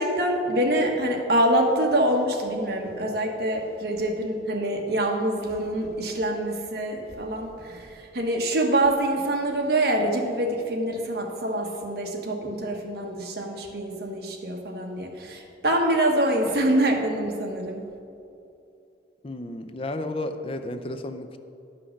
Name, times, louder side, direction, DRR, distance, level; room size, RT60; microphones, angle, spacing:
voice 1, 0.0-17.8, right 1 dB, 60° right, 2 dB, 1.2 m, -25 dB
voice 2, 19.2-21.4, left 1 dB, 30° left, 8 dB, 0.4 m, -32 dB
11.0 x 5.7 x 6.3 m, 2.6 s
head